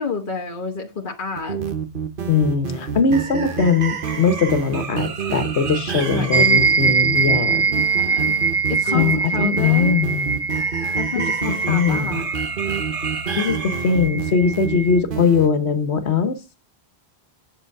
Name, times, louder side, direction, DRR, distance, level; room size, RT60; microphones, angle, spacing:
voice 1, 0.0-1.6 6.1-6.9 7.7-8.4 8.7-10.0 10.9-12.3, left 5 dB, 50° left, 1.4 m, -29 dB
sound 1, 1.4-15.5, right 6 dB, 55° right, 1.2 m, -28 dB
voice 2, 2.3-7.7 8.9-10.3 11.2-11.3 11.7-12.2 13.4-16.4, left 5 dB, 90° left, 1.5 m, -20 dB
sound 2, 6.3-15.0, right 5 dB, 25° right, 0.8 m, -22 dB
8.6 x 8.0 x 4.7 m
omnidirectional pair, 1.1 m